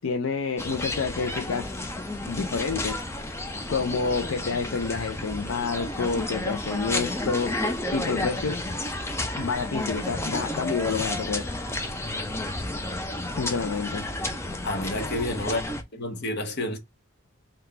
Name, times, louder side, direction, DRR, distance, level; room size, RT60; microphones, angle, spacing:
voice 1, 0.0-1.8 2.3-3.0 3.7-7.6 7.9-8.7 9.4-11.5 13.4-14.1, left 5 dB, 65° left, 0.5 m, -28 dB
sound 1, 0.6-15.8, left 1 dB, 10° left, 0.5 m, -31 dB
voice 2, 14.6-15.6 15.9-16.8, left 1 dB, 50° left, 0.9 m, -29 dB
3.9 x 2.3 x 4.3 m
head